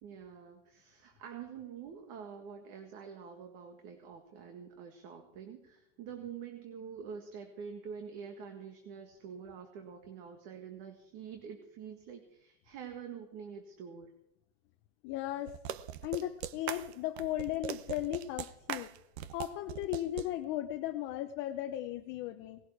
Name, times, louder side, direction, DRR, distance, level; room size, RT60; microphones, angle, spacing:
voice 1, 0.0-14.1, right 7 dB, 45° right, 5 dB, 1.9 m, -46 dB
voice 2, 15.0-15.5 16.0-18.9 19.3-22.6, left 13 dB, 30° left, 7 dB, 0.7 m, -36 dB
sound 1, 15.5-20.3, right 11 dB, 60° right, 0.9 m, -40 dB
19.0 x 12.5 x 4.7 m, 0.82 s
supercardioid pair, 160°, 36 cm